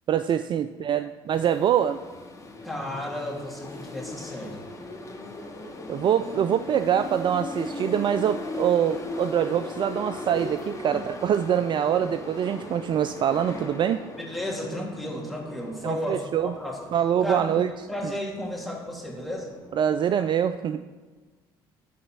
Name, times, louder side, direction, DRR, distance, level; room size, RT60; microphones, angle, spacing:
voice 1, 0.1-2.0 5.9-14.0 15.8-16.5 16.9-17.7 19.7-20.8, right 9 dB, 45° right, 11 dB, 0.4 m, -24 dB
sound 1, 1.3-20.0, left 2 dB, 25° left, 1.8 m, -39 dB
voice 2, 2.6-4.7 10.9-11.0 14.2-16.8 17.2-17.6 17.9-19.5, left 1 dB, ahead, -3 dB, 2.7 m, -33 dB
12.0 x 4.1 x 5.9 m, 1.3 s
hypercardioid pair, 60°, 11 cm